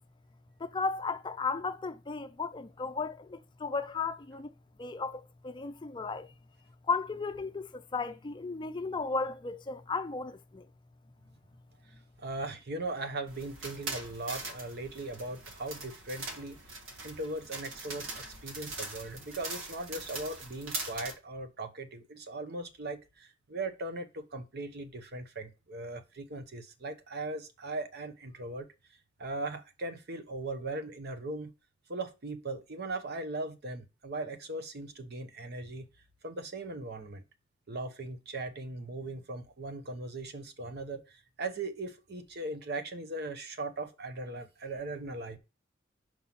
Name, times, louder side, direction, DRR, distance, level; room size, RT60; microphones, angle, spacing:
voice 1, 0.6-4.5 4.8-6.3 6.9-10.7, left 4 dB, 25° left, 0.5 m, -35 dB
voice 2, 12.2-16.6 17.0-28.7 29.2-31.5 31.9-35.9 36.2-37.2 37.7-45.4, right 2 dB, 55° right, 0.9 m, -39 dB
sound 1, 13.3-21.1, right 2 dB, 90° right, 1.4 m, -42 dB
5.5 x 4.6 x 5.8 m
head